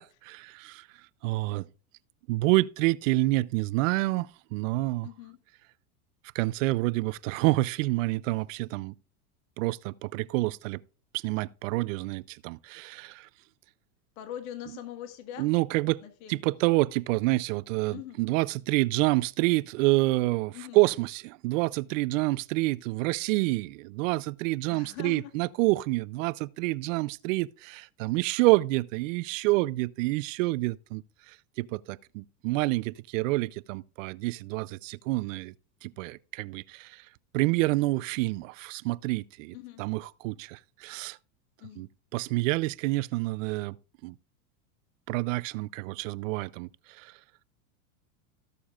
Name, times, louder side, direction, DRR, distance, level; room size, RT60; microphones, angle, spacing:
voice 1, 0.3-0.9 1.2-1.6 2.3-5.1 6.3-8.9 9.6-10.8 11.1-13.3 15.4-16.0 16.3-31.0 31.3-35.5 35.8-37.0 37.3-41.2 41.8-41.9 42.1-43.8 44.0-44.1 45.1-46.7 47.0-47.1, right 20 dB, 60° right, 0.6 m, -28 dB
voice 2, 5.0-5.4 14.2-15.5 16.0-16.4 17.9-18.2 20.5-20.8 24.7-25.3 39.5-39.8 41.6-41.9, left 12 dB, 65° left, 1.8 m, -42 dB
17.5 x 6.9 x 2.4 m
supercardioid pair, 125°, 44 cm